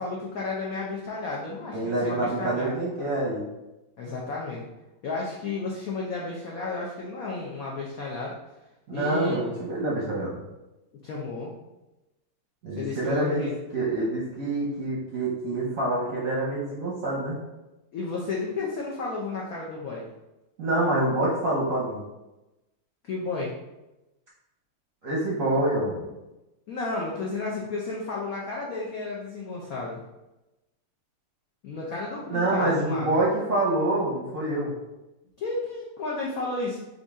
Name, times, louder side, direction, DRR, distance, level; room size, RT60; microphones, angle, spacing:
voice 1, 0.0-2.8 4.0-4.6 5.0-8.3 8.9-9.4 11.0-11.5 12.7-13.5 17.9-20.1 23.0-23.5 26.7-30.0 31.6-33.1 35.4-36.8, left 3 dB, 80° left, -3 dB, 0.7 m, -32 dB
voice 2, 1.7-3.4 8.9-10.4 12.6-17.4 20.6-22.0 25.0-26.1 32.3-34.7, right 2 dB, 60° right, -5 dB, 0.9 m, -26 dB
5.3 x 2.6 x 3.5 m, 0.99 s
omnidirectional pair, 2.4 m